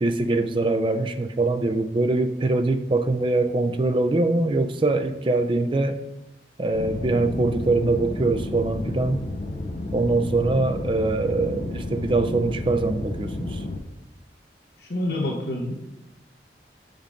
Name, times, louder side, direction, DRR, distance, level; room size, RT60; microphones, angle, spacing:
voice 1, 0.0-6.0 6.6-9.2 9.9-13.6, right 2 dB, 30° right, 8 dB, 0.4 m, -23 dB
sound 1, 6.7-13.8, left 2 dB, 45° left, 0.7 m, -32 dB
voice 2, 14.8-15.7, left 1 dB, 65° left, 0 dB, 1.1 m, -27 dB
5.2 x 5.0 x 5.2 m, 0.93 s
head